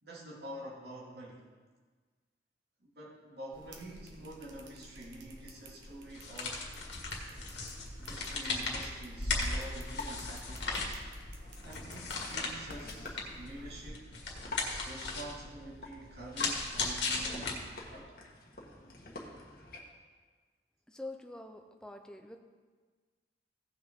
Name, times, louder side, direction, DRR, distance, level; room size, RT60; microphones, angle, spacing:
voice 1, 0.0-1.4 2.8-6.7 8.0-11.0 11.6-14.1 14.8-18.1, right 1 dB, 65° right, -4 dB, 2.4 m, -47 dB
sound 1, 3.5-13.9, right 1 dB, 85° right, 1.2 m, -53 dB
sound 2, 6.1-18.0, left 3 dB, 80° left, 1.8 m, -37 dB
sound 3, 9.5-19.8, left 2 dB, 50° left, 1.4 m, -47 dB
voice 2, 20.9-22.4, left 2 dB, 5° left, 4 dB, 0.6 m, -45 dB
16.5 x 6.1 x 3.7 m, 1.5 s
head